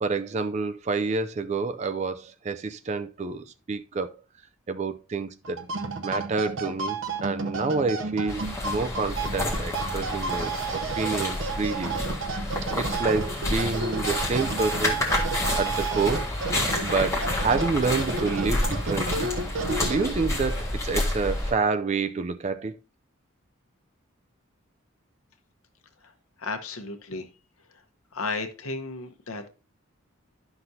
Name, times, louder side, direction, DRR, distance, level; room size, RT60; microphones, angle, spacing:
voice 1, 0.0-4.2 4.7-5.6 6.0-12.0 12.8-15.0 15.6-16.2 16.8-19.3 19.8-22.7, right 4 dB, 30° right, 0.3 m, -28 dB
sound 1, 5.4-20.4, right 4 dB, 65° right, 0.7 m, -32 dB
sound 2, 8.3-21.5, left 1 dB, 15° left, 1.7 m, -29 dB
voice 2, 26.4-27.3 28.1-29.5, left 3 dB, 80° left, 1.0 m, -33 dB
11.0 x 5.9 x 2.7 m
head